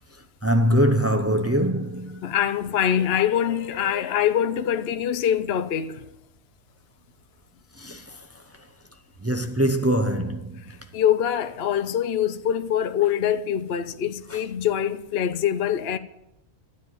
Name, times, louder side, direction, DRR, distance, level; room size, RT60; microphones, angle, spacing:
voice 1, 0.4-2.3 7.8-8.2 9.2-10.6 14.3-14.4, equal, 20° right, 0.3 m, -23 dB
voice 2, 2.2-6.0 10.9-16.0, left 9 dB, 55° left, 0.8 m, -24 dB
13.0 x 9.2 x 9.1 m
omnidirectional pair, 1.6 m